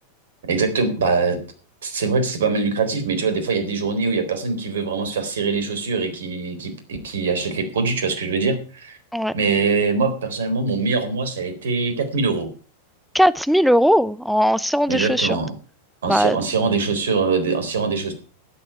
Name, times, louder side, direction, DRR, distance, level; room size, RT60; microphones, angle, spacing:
voice 1, 0.4-1.4 1.8-9.0 9.3-12.5 14.9-15.5 16.0-18.1, right 4 dB, 60° right, 3.9 m, -23 dB
voice 2, 13.1-15.4 16.1-16.4, equal, ahead, 0.8 m, -18 dB
12.5 x 10.5 x 5.7 m
figure-of-eight pair, 90°, 0 cm